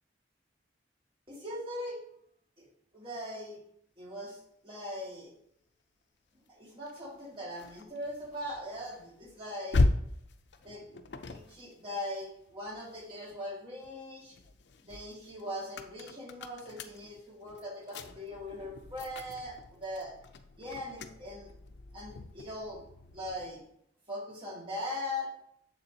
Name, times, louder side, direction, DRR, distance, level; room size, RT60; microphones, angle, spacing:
voice 1, 1.3-2.0 2.6-2.7 2.9-3.6 4.0-4.4 4.6-5.3 6.5-9.8 10.6-10.9 11.3-14.3 14.8-20.1 20.6-21.5 21.9-22.8 23.1-23.6 24.1-25.3, left 1 dB, 30° right, -3 dB, 2.1 m, -40 dB
sound 1, 6.9-13.4 13.8-23.6, left 2 dB, 75° left, 0.5 m, -37 dB
7.0 x 6.9 x 2.8 m, 0.72 s
head